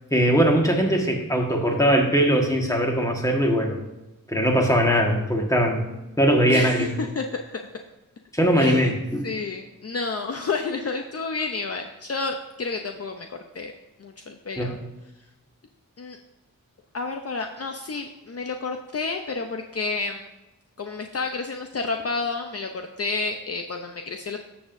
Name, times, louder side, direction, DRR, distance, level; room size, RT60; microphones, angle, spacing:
voice 1, 0.1-3.8 4.3-5.8 6.2-6.9 8.3-9.3 14.6-14.7, equal, 10° left, 1 dB, 1.6 m, -20 dB
voice 2, 6.5-7.6 8.6-8.9 9.2-13.7 14.0-14.8 16.0-16.2 16.9-20.3 20.8-24.4, left 4 dB, 45° left, 4 dB, 0.7 m, -30 dB
13.5 x 7.1 x 2.6 m, 1.0 s
wide cardioid pair, 105°, 33 cm